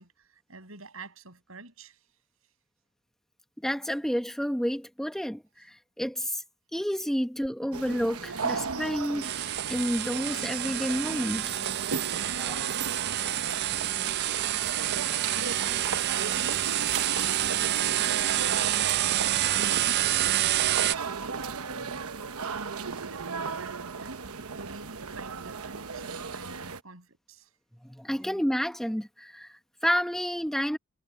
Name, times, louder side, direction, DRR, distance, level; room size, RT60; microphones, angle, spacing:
voice 1, 0.0-2.0 14.8-18.0 18.3-21.5 22.5-24.2 24.5-27.5, right 2 dB, 70° right, 7.3 m, -47 dB
voice 2, 3.6-6.4 6.7-11.6 12.4-12.7 27.8-30.8, equal, ahead, 0.9 m, -30 dB
sound 1, 7.7-26.8, right 5 dB, 85° right, 1.1 m, -36 dB
sound 2, 9.2-21.0, right 13 dB, 50° right, 0.4 m, -28 dB
head